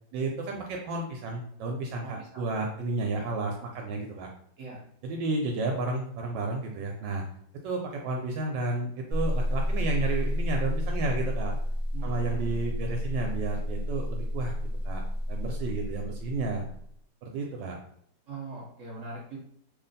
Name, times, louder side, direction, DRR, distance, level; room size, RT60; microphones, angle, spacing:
voice 1, 0.1-4.3 5.0-7.2 7.6-11.6 12.0-14.5 14.8-15.0 15.3-16.6 17.2-17.8, right 3 dB, 75° right, 1 dB, 1.2 m, -32 dB
voice 2, 2.0-2.4 4.6-4.8 11.9-12.6 18.3-19.4, right 3 dB, 55° right, -2 dB, 0.9 m, -41 dB
sound 1, 9.1-16.9, left 1 dB, 20° right, 0.4 m, -30 dB
3.1 x 2.4 x 3.9 m, 0.67 s
omnidirectional pair, 2.1 m